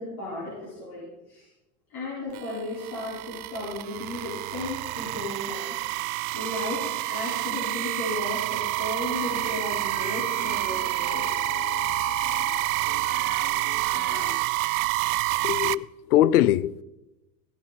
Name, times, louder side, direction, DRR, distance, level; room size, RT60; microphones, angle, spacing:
voice 1, 0.0-1.5 1.9-11.5, left 2 dB, 45° left, 4.9 m, -35 dB
sound 1, 2.3-15.7, right 21 dB, 75° right, 0.5 m, -28 dB
sound 2, 5.5-14.4, left 5 dB, 20° left, 1.1 m, -41 dB
voice 2, 15.4-16.8, left 13 dB, 90° left, 0.6 m, -22 dB
16.5 x 11.0 x 4.2 m
supercardioid pair, 110°, 44 cm